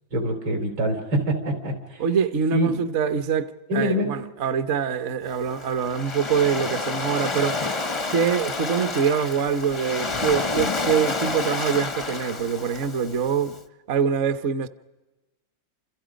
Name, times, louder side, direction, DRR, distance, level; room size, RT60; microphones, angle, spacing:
voice 1, 0.1-2.0 2.5-2.8 3.7-4.1, equal, 85° right, 5.5 m, -24 dB
voice 2, 2.0-7.6 8.1-13.6 13.9-14.7, right 7 dB, 50° right, 1.0 m, -24 dB
Waves surf, 5.3-13.5, left 3 dB, 35° left, 0.5 m, -29 dB
29.5 x 27.5 x 5.2 m
omnidirectional pair, 2.1 m